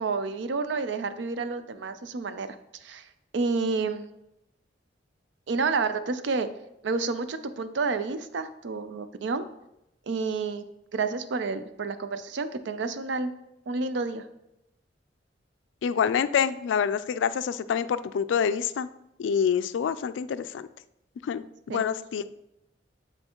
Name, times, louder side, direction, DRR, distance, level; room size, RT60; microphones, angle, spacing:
voice 1, 0.0-2.6 2.8-3.1 3.3-4.1 5.5-6.5 6.8-9.5 10.1-10.6 10.9-13.3 13.7-14.2 21.7-21.8, right 4 dB, 75° right, 11 dB, 0.5 m, -29 dB
voice 2, 15.8-18.9 19.2-20.7 21.2-22.2, left 7 dB, 90° left, 14 dB, 0.3 m, -27 dB
7.8 x 4.5 x 2.9 m, 0.85 s
head